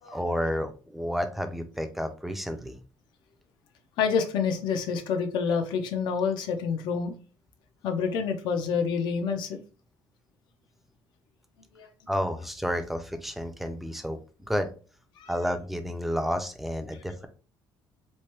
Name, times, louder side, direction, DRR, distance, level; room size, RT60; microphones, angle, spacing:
voice 1, 0.1-2.8 12.1-14.2 14.5-14.7 15.3-17.3, equal, ahead, 7 dB, 0.3 m, -30 dB
voice 2, 4.0-7.1 7.8-9.6 11.7-11.9 15.2-15.4, left 6 dB, 75° left, 5 dB, 0.5 m, -28 dB
3.1 x 2.1 x 2.9 m, 0.36 s
cardioid pair, 165°, 8 cm